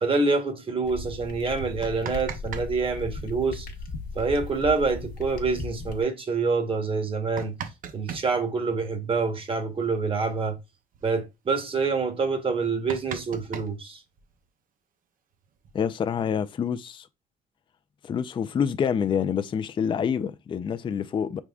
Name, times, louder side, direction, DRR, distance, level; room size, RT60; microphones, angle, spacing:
voice 1, 0.0-3.7 4.1-7.5 7.9-10.6 11.0-14.0, right 4 dB, 30° right, 1.1 m, -26 dB
sound 1, 0.8-6.0, left 3 dB, 60° left, 1.0 m, -37 dB
sound 2, 1.6-2.7 2.9-3.0 4.8-4.9 5.3-5.4 6.0-6.1 6.9-8.3 9.8-9.9 10.2-10.4 10.7-11.1 11.7-11.8 12.1-12.2 12.5-14.4 15.3-16.2, right 7 dB, 55° right, 0.6 m, -39 dB
voice 2, 15.7-17.1 18.0-21.4, left 7 dB, 30° left, 0.3 m, -27 dB
4.9 x 3.6 x 2.3 m
cardioid pair, 90°, 17 cm